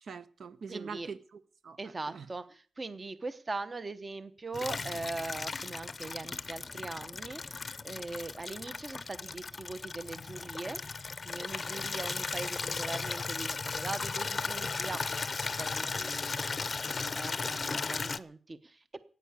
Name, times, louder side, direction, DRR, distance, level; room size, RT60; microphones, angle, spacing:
voice 1, 0.0-2.3, right 5 dB, 55° right, 0.9 m, -44 dB
voice 2, 0.7-1.1 1.8-10.8 11.2-15.0 15.6-19.1, right 3 dB, 25° right, 0.9 m, -41 dB
Water tap faucet / Liquid, 4.5-18.2, left 4 dB, 30° left, 0.7 m, -36 dB
16.0 x 9.5 x 8.4 m
wide cardioid pair, 170°, 0 cm